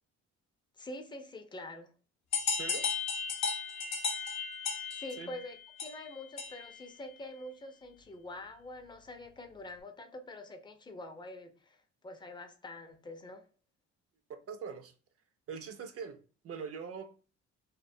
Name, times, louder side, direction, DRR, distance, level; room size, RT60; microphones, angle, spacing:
voice 1, 0.8-1.9 4.9-13.4, left 1 dB, 15° left, 0.4 m, -46 dB
sound 1, 2.3-6.8, left 5 dB, 65° left, 0.7 m, -35 dB
voice 2, 14.3-14.9 15.5-17.1, right 6 dB, 50° right, 0.5 m, -42 dB
2.3 x 2.2 x 2.6 m
cardioid pair, 90°, 30 cm